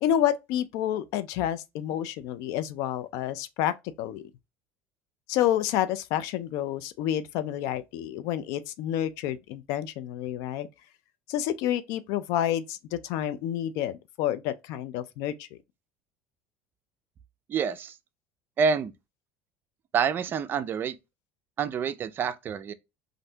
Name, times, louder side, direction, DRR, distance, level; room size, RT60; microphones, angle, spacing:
voice 1, 0.0-4.3 5.3-10.7 11.3-15.6, left 11 dB, 70° left, 0.3 m, -29 dB
voice 2, 17.5-17.9 18.6-18.9 19.9-21.0 21.6-22.7, right 6 dB, 35° right, 0.4 m, -27 dB
3.2 x 2.5 x 2.7 m
supercardioid pair, 110°, 6 cm